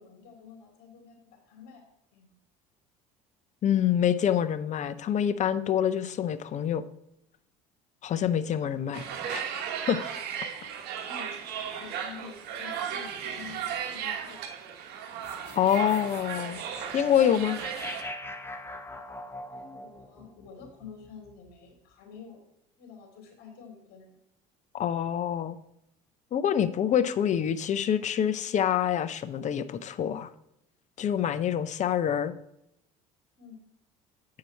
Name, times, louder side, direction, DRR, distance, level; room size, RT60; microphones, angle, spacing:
voice 1, 0.0-1.8 2.1-2.3 10.6-14.7 15.4-16.0 19.5-22.4 22.8-24.2 33.4-33.6, left 6 dB, 65° left, 2 dB, 2.9 m, -49 dB
voice 2, 3.6-6.8 8.0-9.0 9.3-9.4 9.9-10.0 15.6-16.6 16.9-17.6 24.7-25.6 26.3-30.3 31.0-32.3, left 9 dB, 40° left, 13 dB, 0.6 m, -26 dB
sound 1, 8.9-18.0, right 8 dB, 65° right, 1.1 m, -36 dB
sound 2, 15.2-21.5, left 1 dB, 15° left, 0.9 m, -43 dB
8.3 x 4.8 x 4.4 m, 0.80 s
supercardioid pair, 80°, 18 cm